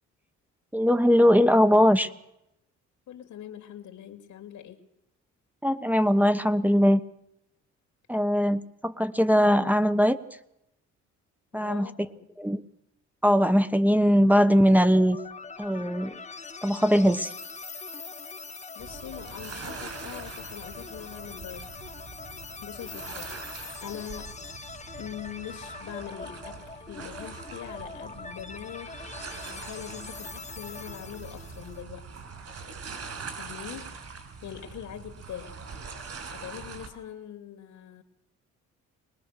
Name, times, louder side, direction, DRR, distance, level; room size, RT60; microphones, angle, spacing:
voice 1, 0.7-2.1 5.6-7.0 8.1-10.2 11.5-11.9 12.4-12.6 13.2-15.2 15.6-16.1 16.6-17.3, equal, 5° right, 10 dB, 1.1 m, -21 dB
voice 2, 3.1-4.8 11.5-12.3 18.8-21.8 22.6-24.3 25.0-29.1 29.5-32.1 33.4-34.0 34.4-35.6 36.3-38.0, left 10 dB, 75° left, 7 dB, 2.6 m, -42 dB
sound 1, 14.9-31.8, left 4 dB, 25° left, 1.3 m, -42 dB
sound 2, 18.8-36.9, right 5 dB, 55° right, 5.6 m, -43 dB
22.5 x 20.0 x 6.7 m, 0.83 s
cardioid pair, 90°, 30 cm